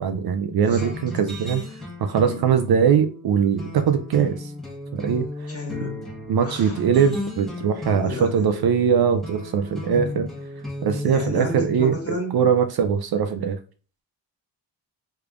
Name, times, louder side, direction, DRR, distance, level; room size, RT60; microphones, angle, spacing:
voice 1, 0.0-1.6 2.0-4.5 4.9-5.3 6.3-10.3 10.8-13.6, right 7 dB, 55° right, 0.5 m, -21 dB
voice 2, 0.6-1.0 2.2-2.4 5.5-6.0 6.4-6.8 7.9-8.4 11.1-12.4, left 1 dB, 30° left, 1.5 m, -32 dB
sound 1, 0.8-12.1, left 2 dB, ahead, 1.1 m, -35 dB
3.4 x 3.3 x 2.4 m
cardioid pair, 60°, 46 cm